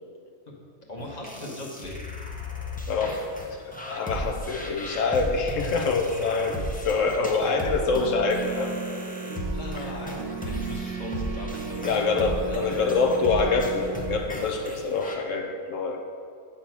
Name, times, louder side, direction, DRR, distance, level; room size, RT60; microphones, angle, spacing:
voice 1, 0.9-1.9 4.9-5.3 9.2-12.8, left 1 dB, 30° left, -2 dB, 1.2 m, -39 dB
sound 1, 1.0-15.1, left 1 dB, 10° left, 0.4 m, -36 dB
voice 2, 2.9-8.7 11.8-16.0, left 4 dB, 70° left, 3 dB, 1.2 m, -26 dB
sound 2, 8.0-14.2, right 5 dB, 65° right, 1.0 m, -35 dB
8.4 x 4.1 x 5.9 m, 2.2 s
omnidirectional pair, 1.4 m